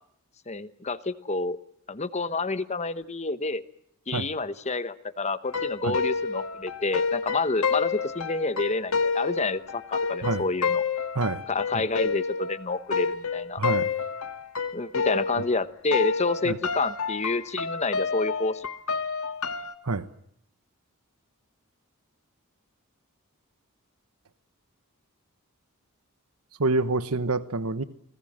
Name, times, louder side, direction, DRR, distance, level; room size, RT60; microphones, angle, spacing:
voice 1, 0.5-1.6 1.9-3.6 4.1-10.8 11.5-13.6 14.7-18.7, left 3 dB, 30° left, 1.1 m, -29 dB
sound 1, 5.5-15.6 15.9-19.7, left 5 dB, 75° left, 1.8 m, -29 dB
voice 2, 13.6-13.9 16.4-16.6 19.8-20.1 26.6-27.8, right 3 dB, 85° right, 1.2 m, -27 dB
30.0 x 19.5 x 7.5 m
head